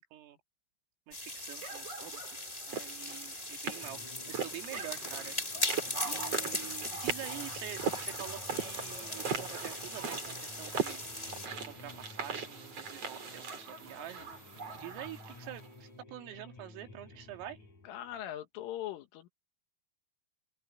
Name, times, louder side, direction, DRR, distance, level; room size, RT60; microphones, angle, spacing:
sound 1, 1.1-11.5, left 2 dB, 20° left, 1.1 m, -39 dB
voice 1, 1.1-2.4 2.7-4.0 4.3-5.4 6.0-11.0 11.6-14.3 14.7-17.6, right 12 dB, 80° right, 4.8 m, -46 dB
sound 2, 1.6-15.7, right 6 dB, 35° right, 3.9 m, -40 dB
sound 3, 3.8-18.2, left 3 dB, 35° left, 7.6 m, -54 dB
voice 2, 17.9-19.3, left 12 dB, 75° left, 4.2 m, -40 dB
open air
omnidirectional pair, 5.8 m